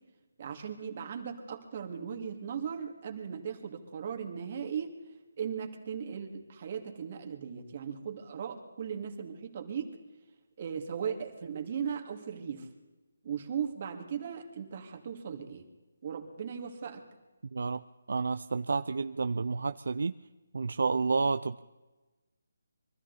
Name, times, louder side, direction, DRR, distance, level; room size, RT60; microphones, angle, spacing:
voice 1, 0.4-5.0 5.4-10.0 10.6-12.7 13.2-15.7 16.0-17.0, right 7 dB, 40° right, 4 dB, 2.3 m, -37 dB
voice 2, 17.5-17.8 18.1-20.1 20.5-21.6, right 4 dB, 70° right, 11 dB, 0.5 m, -30 dB
23.5 x 13.5 x 4.1 m, 1.1 s
figure-of-eight pair, 160°, 0 cm